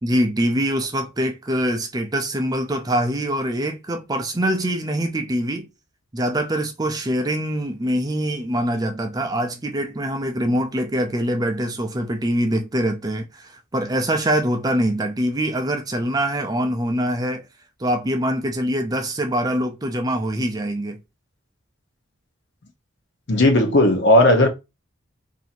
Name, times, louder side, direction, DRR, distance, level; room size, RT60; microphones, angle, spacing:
voice 1, 0.0-5.7 6.1-17.4 17.8-21.0, equal, 20° right, 0.5 m, -24 dB
voice 2, 23.3-24.5, left 1 dB, 55° left, 0.9 m, -15 dB
2.7 x 2.7 x 4.2 m
head